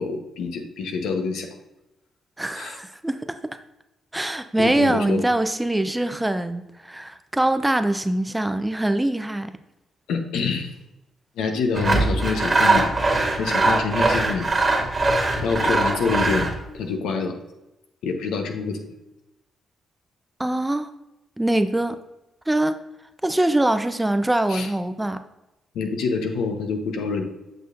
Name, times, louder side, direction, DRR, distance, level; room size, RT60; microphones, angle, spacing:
voice 1, 0.0-1.5 2.6-2.8 4.6-5.3 10.1-10.7 11.4-12.9 13.4-14.5 15.4-17.4 18.0-18.8 24.5-24.7 25.7-27.2, left 4 dB, 80° left, 4 dB, 0.9 m, -26 dB
voice 2, 2.4-3.2 4.1-9.5 20.4-20.9 21.4-22.0 22.5-22.8 23.2-25.2, right 1 dB, 10° right, 9 dB, 0.6 m, -23 dB
Sawing, 11.7-16.6, right 2 dB, 30° right, 1.6 m, -21 dB
7.9 x 6.4 x 2.6 m, 0.96 s
supercardioid pair, 50°, 0 cm